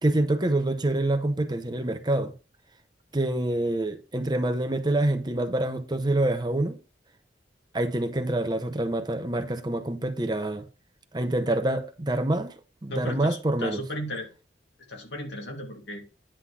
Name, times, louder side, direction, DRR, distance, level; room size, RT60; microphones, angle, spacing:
voice 1, 0.0-2.3 3.1-6.8 7.7-10.7 11.1-12.5 12.8-13.8, right 1 dB, 25° right, 0.8 m, -26 dB
voice 2, 12.9-14.3 14.9-16.1, left 1 dB, 85° left, 2.8 m, -35 dB
9.9 x 3.8 x 6.2 m
head